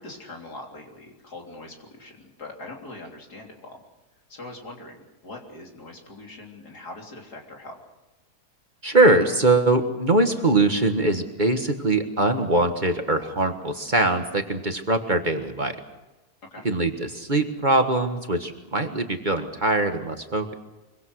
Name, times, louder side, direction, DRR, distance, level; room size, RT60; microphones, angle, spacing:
voice 1, 0.0-3.8 4.3-7.8 16.5-16.7, left 2 dB, 80° left, 1 dB, 4.0 m, -42 dB
voice 2, 8.8-15.8 16.6-20.6, right 2 dB, 30° right, 6 dB, 1.6 m, -22 dB
24.5 x 23.5 x 6.4 m, 1.0 s
omnidirectional pair, 1.7 m